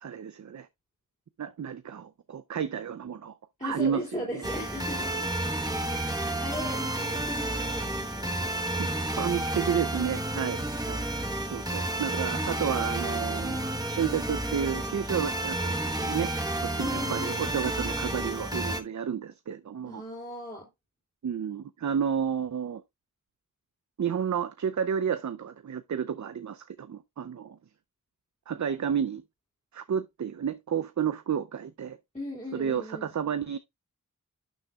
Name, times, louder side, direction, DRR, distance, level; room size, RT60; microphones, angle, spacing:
voice 1, 0.0-0.7 1.4-3.3 3.6-4.5 8.8-8.9 9.2-11.1 11.5-16.3 16.6-20.0 21.2-22.8 24.0-27.6 28.5-29.2 29.7-32.0 32.5-33.6, right 8 dB, 60° right, 0.5 m, -31 dB
voice 2, 3.6-5.2 5.9-8.5 12.0-12.3 16.8-17.9 19.8-20.6 32.1-33.1, left 1 dB, 20° left, 3.1 m, -38 dB
sound 1, 4.4-18.8, right 1 dB, 10° right, 1.2 m, -31 dB
12.0 x 6.4 x 2.3 m
wide cardioid pair, 55°, 32 cm